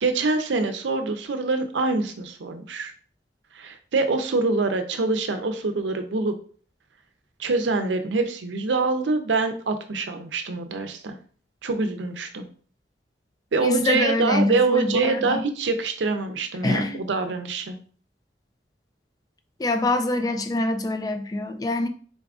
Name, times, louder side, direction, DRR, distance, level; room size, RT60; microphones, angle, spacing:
voice 1, 0.0-2.9 3.5-6.3 7.4-11.2 11.6-12.5 13.5-17.7, right 3 dB, 80° right, 0.5 m, -25 dB
voice 2, 13.6-15.4 16.6-17.0 19.6-21.9, left 2 dB, 20° left, 0.3 m, -25 dB
3.9 x 2.4 x 3.5 m
head